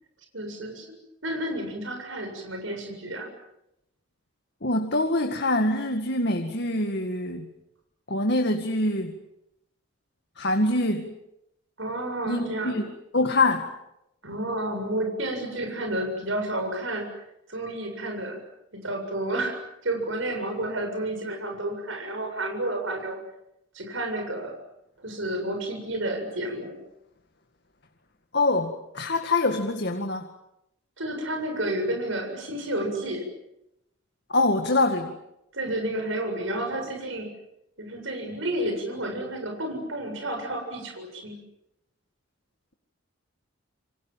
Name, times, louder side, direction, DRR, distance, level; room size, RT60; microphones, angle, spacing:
voice 1, 0.3-1.0 1.2-3.3 11.8-12.8 14.2-17.1 17.5-18.4 18.7-23.2 23.7-24.5 25.0-26.7 31.0-33.3 35.5-37.3 37.8-41.4, right 1 dB, 70° right, 4 dB, 7.4 m, -31 dB
voice 2, 4.6-7.5 8.1-9.1 10.4-11.1 12.3-12.9 13.1-13.7 28.3-30.3 34.3-35.1, left 2 dB, 55° left, 4 dB, 2.1 m, -24 dB
29.5 x 25.0 x 7.5 m, 0.84 s
head